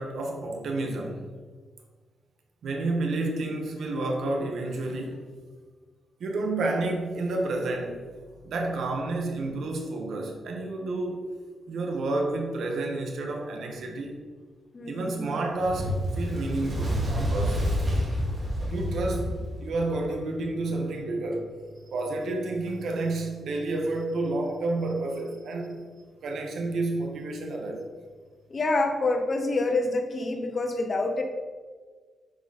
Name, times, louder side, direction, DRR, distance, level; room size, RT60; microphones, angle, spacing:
voice 1, 0.0-1.3 2.6-5.3 6.2-8.1 8.4-11.3 11.7-14.2 14.9-17.6 18.6-21.5 21.9-25.8 26.2-27.9, right 2 dB, 75° right, 2 dB, 1.3 m, -30 dB
voice 2, 14.7-15.3 28.5-31.2, left 2 dB, 35° left, 4 dB, 1.0 m, -27 dB
Fire, 15.5-20.1, equal, 40° right, 2.3 m, -28 dB
10.5 x 4.0 x 4.2 m, 1.5 s
cardioid pair, 120°, 0 cm